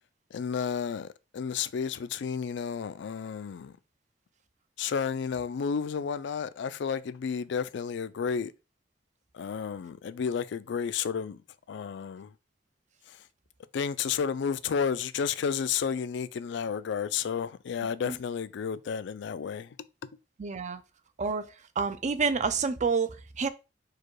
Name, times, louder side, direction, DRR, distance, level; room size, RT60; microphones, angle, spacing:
voice 1, 0.3-1.1 1.3-3.7 4.8-8.5 9.3-11.4 11.7-12.3 13.1-13.2 13.7-19.7, left 6 dB, 70° left, 0.3 m, -31 dB
voice 2, 20.4-20.8 21.2-21.5 21.8-23.5, right 5 dB, 40° right, 0.5 m, -28 dB
4.7 x 2.3 x 4.5 m
head